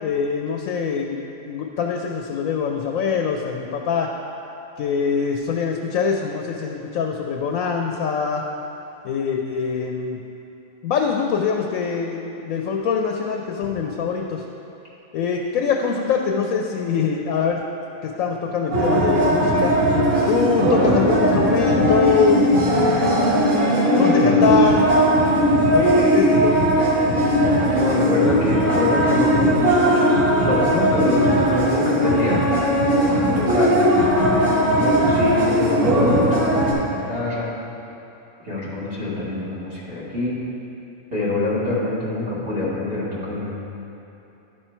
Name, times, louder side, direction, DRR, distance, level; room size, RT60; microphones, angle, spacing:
voice 1, 0.0-4.1 4.8-8.4 9.0-10.2 10.8-14.4 15.1-17.6 18.0-19.7 20.3-23.2 24.0-24.9 25.7-26.6, left 6 dB, 85° left, 2 dB, 1.0 m, -23 dB
sound 1, 18.7-36.7, equal, 70° right, 1.8 m, -18 dB
voice 2, 27.7-30.2 30.4-32.5 33.0-33.8 34.3-37.5 38.4-40.4 41.1-43.5, left 2 dB, 45° right, -8 dB, 2.1 m, -25 dB
11.0 x 4.4 x 4.4 m, 3.0 s
omnidirectional pair, 1.4 m